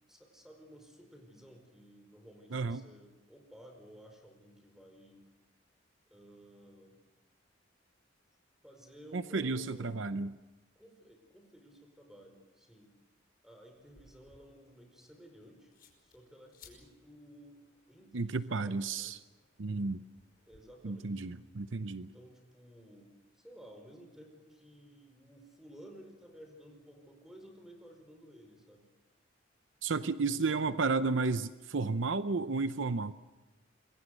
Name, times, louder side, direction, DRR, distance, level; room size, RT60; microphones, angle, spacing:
voice 1, 0.1-5.2 6.1-7.0 8.6-10.0 10.7-12.9 13.4-15.7 16.0-17.6 17.9-19.2 20.5-21.2 22.0-28.9 30.2-30.5 32.7-33.0, equal, ahead, 5 dB, 4.9 m, -55 dB
voice 2, 2.5-2.8 9.1-10.3 18.1-19.2 19.6-20.0 20.8-22.1 29.8-33.1, right 4 dB, 70° right, 12 dB, 0.7 m, -32 dB
sound 1, 13.7-20.6, left 5 dB, 50° left, 5.5 m, -64 dB
26.5 x 22.5 x 6.7 m, 1.1 s
head